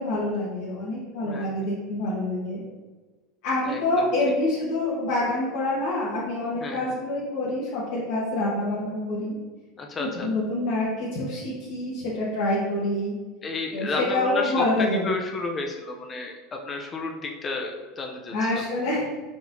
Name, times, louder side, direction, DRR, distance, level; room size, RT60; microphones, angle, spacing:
voice 1, 0.0-2.6 3.4-9.4 10.0-13.2 13.7-15.0 18.3-19.0, left 1 dB, 70° left, -9 dB, 1.3 m, -26 dB
voice 2, 1.2-1.6 3.6-4.1 6.6-7.0 9.8-10.3 13.4-18.7, left 3 dB, 25° left, 3 dB, 0.5 m, -32 dB
4.4 x 4.0 x 2.6 m, 1.3 s
supercardioid pair, 130°, 0 cm